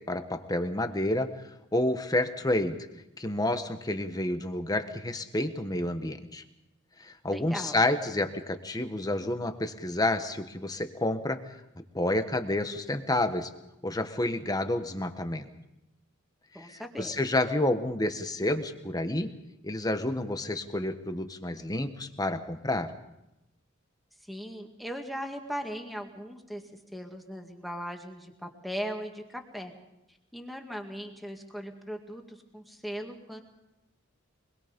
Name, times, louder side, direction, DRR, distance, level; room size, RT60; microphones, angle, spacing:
voice 1, 0.1-2.9 3.2-6.4 7.0-11.4 11.9-13.5 13.8-15.5 16.5-19.3 19.6-22.9, left 1 dB, 20° left, 8 dB, 1.3 m, -29 dB
voice 2, 7.3-7.8 16.5-17.1 24.2-26.6 26.9-29.7 30.3-33.4, equal, ahead, 3 dB, 2.1 m, -38 dB
24.5 x 21.5 x 5.3 m, 0.91 s
head